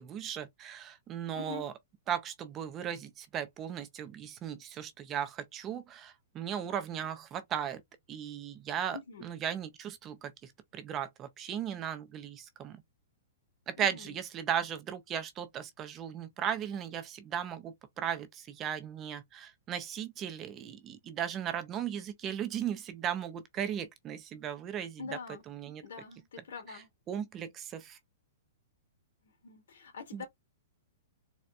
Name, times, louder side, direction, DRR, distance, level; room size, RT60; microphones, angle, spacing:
voice 1, 0.0-1.7 2.1-7.8 8.1-12.8 13.7-25.2 25.5-25.8 26.7-28.0 30.1-30.2, right 9 dB, 15° right, 0.4 m, -37 dB
voice 2, 8.9-9.3 13.8-14.2 25.0-25.4 25.8-26.9 29.2-30.3, left 5 dB, 85° left, 2.0 m, -44 dB
4.1 x 2.2 x 2.3 m
hypercardioid pair, 180°, 0 cm